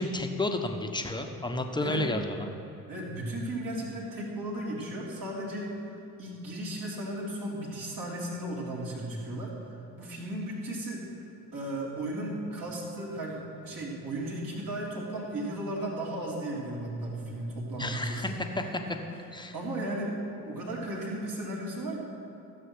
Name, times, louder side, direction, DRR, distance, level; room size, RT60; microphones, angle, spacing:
voice 1, 0.0-2.5 17.8-19.0 19.3-19.5, left 1 dB, 10° left, 5 dB, 1.1 m, -31 dB
voice 2, 2.9-5.9 6.2-11.0 11.5-18.3 19.5-20.2 20.4-22.0, right 1 dB, 45° right, -3 dB, 3.3 m, -35 dB
14.5 x 7.5 x 6.2 m, 2.9 s
figure-of-eight pair, 50°, 44 cm